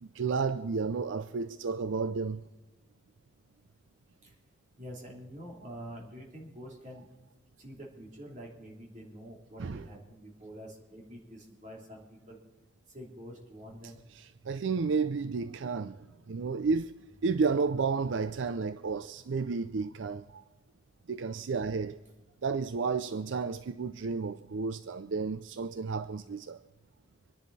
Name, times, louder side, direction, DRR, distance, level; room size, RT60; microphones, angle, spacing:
voice 1, 0.0-2.4 9.6-9.9 13.8-20.4 21.1-22.0 22.4-26.6, right 4 dB, 75° right, 0.4 m, -32 dB
voice 2, 4.8-7.1 7.6-12.4 12.9-14.0, equal, 40° right, 3.1 m, -46 dB
25.0 x 10.5 x 4.1 m
head